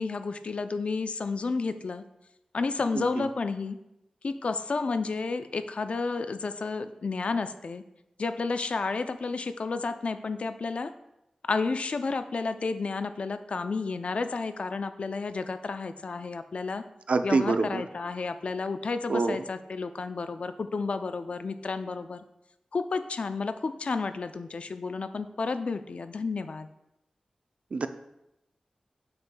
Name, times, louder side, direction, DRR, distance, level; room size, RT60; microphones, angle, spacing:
voice 1, 0.0-2.0 2.5-3.8 4.2-7.8 8.2-10.9 11.4-16.8 17.2-22.2 22.7-26.7, left 4 dB, 65° left, 10 dB, 0.4 m, -31 dB
voice 2, 2.9-3.3 17.1-17.8 19.1-19.4 27.7-27.9, right 3 dB, 65° right, 9 dB, 0.4 m, -26 dB
7.0 x 6.6 x 2.2 m, 0.88 s
wide cardioid pair, 80°, 2 cm